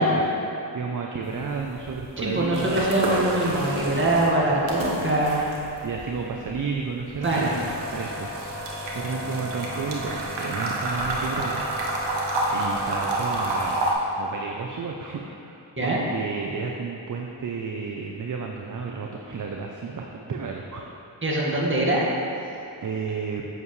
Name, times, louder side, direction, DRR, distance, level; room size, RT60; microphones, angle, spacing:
voice 1, 0.0-2.8 5.8-7.6 7.9-11.6 12.5-13.8 14.2-21.2 22.8-23.4, right 5 dB, 45° right, 1 dB, 0.6 m, -32 dB
sound 1, 1.2-6.3, right 1 dB, 85° right, 1.3 m, -36 dB
sound 2, 1.5-1.9 2.2-4.9 5.2-13.9, right 1 dB, 70° right, 1.2 m, -29 dB
voice 2, 2.2-5.4 7.2-7.5 15.8-16.0 21.2-22.1, right 1 dB, 25° right, -5 dB, 1.8 m, -23 dB
8.0 x 7.3 x 3.2 m, 2.8 s
cardioid pair, 60°, 44 cm